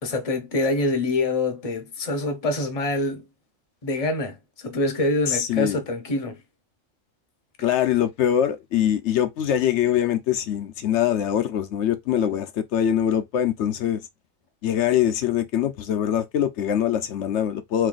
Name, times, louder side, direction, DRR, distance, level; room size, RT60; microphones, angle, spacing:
voice 1, 0.0-3.2 3.8-6.4, left 2 dB, 35° left, 0.7 m, -25 dB
voice 2, 5.3-5.8 7.6-14.0 14.6-17.9, left 10 dB, 65° left, 0.8 m, -23 dB
3.1 x 2.7 x 3.8 m
omnidirectional pair, 1.5 m